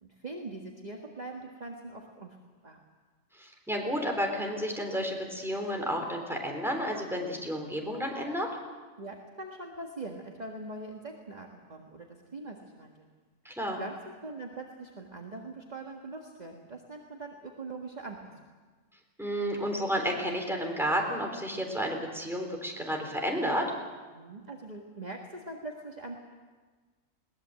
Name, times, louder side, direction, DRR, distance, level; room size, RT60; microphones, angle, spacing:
voice 1, 0.0-2.4 2.6-2.8 9.0-13.1 13.8-18.5 24.1-26.2, right 2 dB, 30° right, 0 dB, 1.8 m, -42 dB
voice 2, 3.3-8.5 13.4-13.8 19.2-23.7, equal, ahead, 1 dB, 3.7 m, -31 dB
21.5 x 19.5 x 7.8 m, 1.4 s
omnidirectional pair, 1.4 m